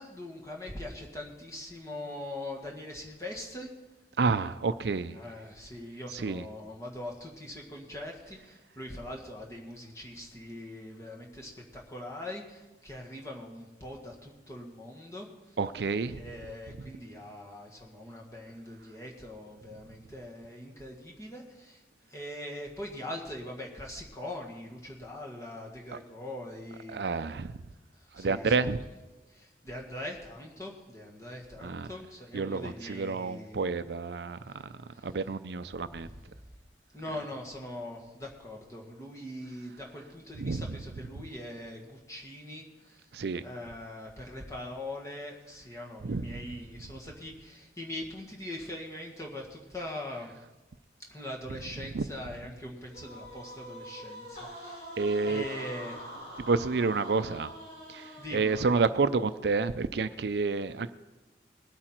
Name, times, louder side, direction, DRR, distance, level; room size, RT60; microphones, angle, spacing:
voice 1, 0.0-3.7 5.1-15.6 16.1-27.0 27.9-28.7 29.3-33.6 34.4-35.1 35.8-36.5 36.9-43.1 43.4-50.4 51.1-54.9 55.2-56.2 58.2-58.6, left 1 dB, 15° left, -1 dB, 1.9 m, -42 dB
voice 2, 4.2-5.2 6.1-6.4 15.6-16.2 26.9-27.6 28.1-28.8 31.6-31.9 32.3-36.1 40.4-40.8 43.1-43.4 46.0-46.4 51.9-52.0 55.0-55.4 56.4-57.5 57.9-60.9, right 4 dB, 70° right, 12 dB, 0.5 m, -29 dB
sound 1, 52.9-59.2, equal, 60° left, 4.8 m, -45 dB
20.0 x 8.8 x 4.5 m, 1.1 s
head